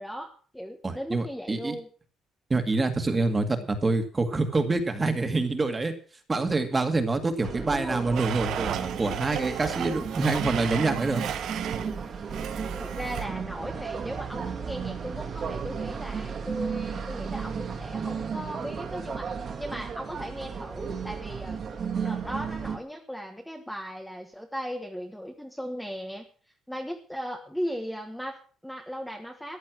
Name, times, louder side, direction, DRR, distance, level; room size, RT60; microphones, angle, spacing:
voice 1, 0.0-1.9 7.7-8.1 12.8-21.6 22.0-26.3 26.7-29.6, equal, ahead, 2 dB, 1.4 m, -37 dB
voice 2, 0.8-1.8 2.5-5.9 6.3-11.3, right 3 dB, 15° right, 7 dB, 2.1 m, -26 dB
sound 1, 7.4-22.8, right 6 dB, 40° right, 2.4 m, -34 dB
Domestic sounds home sounds, 8.2-12.0 12.3-13.3, right 10 dB, 60° right, 1.3 m, -34 dB
14.5 x 10.0 x 6.1 m, 0.41 s
cardioid pair, 155°, 0 cm